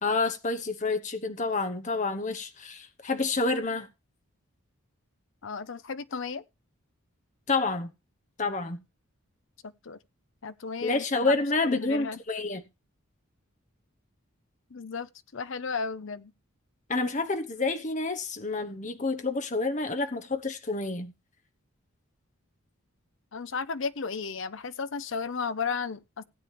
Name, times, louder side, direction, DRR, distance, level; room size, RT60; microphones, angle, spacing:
voice 1, 0.0-3.9 7.5-7.9 8.4-8.8 10.8-12.6 16.9-21.1, left 3 dB, 35° left, 1.1 m, -28 dB
voice 2, 5.4-6.4 9.6-10.0 10.4-11.3 11.6-12.2 14.7-16.3 23.3-26.2, left 5 dB, 60° left, 0.6 m, -34 dB
16.5 x 8.5 x 3.3 m
head